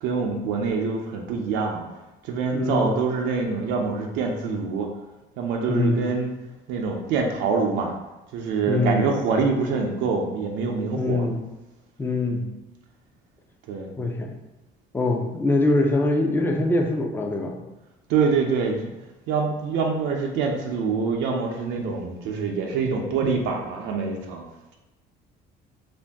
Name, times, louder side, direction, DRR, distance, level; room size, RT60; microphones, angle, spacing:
voice 1, 0.0-1.8 2.2-4.9 5.4-6.3 6.7-7.9 8.3-11.3 12.3-12.5 13.7-13.9 18.1-18.9 19.3-24.4, right 5 dB, 80° right, 1 dB, 0.5 m, -25 dB
voice 2, 2.5-2.9 5.7-6.1 8.7-9.1 11.0-11.4 12.0-12.4 14.0-14.3 14.9-17.6, left 2 dB, 10° left, 2 dB, 0.4 m, -23 dB
2.5 x 2.2 x 3.4 m, 1.0 s
supercardioid pair, 90°, 19 cm